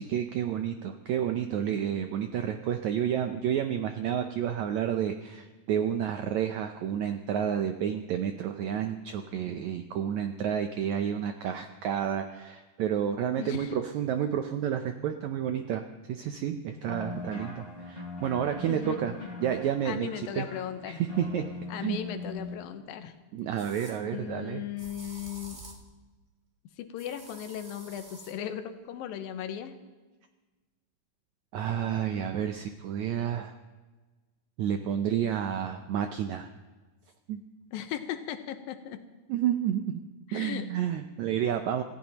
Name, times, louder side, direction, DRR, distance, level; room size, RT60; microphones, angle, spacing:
voice 1, 0.0-19.1 19.4-20.1 20.3-20.5 20.9-22.0 23.3-24.6 31.5-33.5 34.6-36.5 37.3-37.4 39.3-40.0 40.3-41.8, right 9 dB, 80° right, 7 dB, 1.6 m, -30 dB
voice 2, 13.3-13.7 18.7-19.0 19.8-21.0 21.7-23.1 24.1-25.6 26.8-29.8 37.7-39.0 40.3-40.7, left 10 dB, 85° left, 8 dB, 2.7 m, -37 dB
sound 1, 16.8-22.6, left 3 dB, 20° left, 3.3 m, -41 dB
sound 2, 22.4-22.5 23.6-24.0 24.8-25.9 27.0-28.4, right 2 dB, 60° right, 0.4 m, -48 dB
26.5 x 16.0 x 3.0 m, 1.3 s
omnidirectional pair, 4.1 m